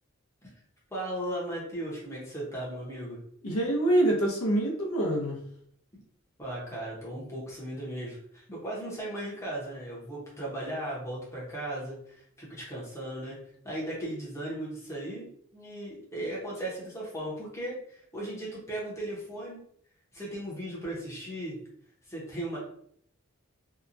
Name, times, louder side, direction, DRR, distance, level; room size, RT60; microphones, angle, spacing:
voice 1, 0.9-3.2 6.4-13.4 13.6-15.3 15.5-19.6 20.1-21.6 22.0-22.6, right 1 dB, 15° left, -6 dB, 0.7 m, -37 dB
voice 2, 3.4-5.4, right 1 dB, 75° left, -1 dB, 0.7 m, -25 dB
2.8 x 2.2 x 2.5 m, 0.66 s
head